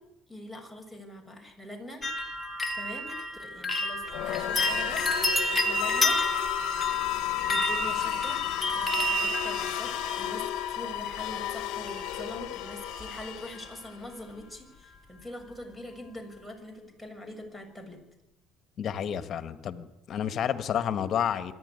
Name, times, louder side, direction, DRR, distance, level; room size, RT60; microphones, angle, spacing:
voice 1, 0.3-2.0 2.7-3.1 3.4-4.0 4.3-6.2 7.2-18.0, left 1 dB, 5° right, 6 dB, 6.8 m, -43 dB
sound 1, 2.0-11.0 11.9-12.4 12.7-13.2 13.5-13.6, equal, 15° left, 2.6 m, -31 dB
sound 2, 4.0-14.0, left 13 dB, 75° left, 1.2 m, -32 dB
voice 2, 18.8-21.5, left 9 dB, 50° left, 11 dB, 1.7 m, -30 dB
25.0 x 11.5 x 9.9 m, 0.98 s
supercardioid pair, 80°, 0 cm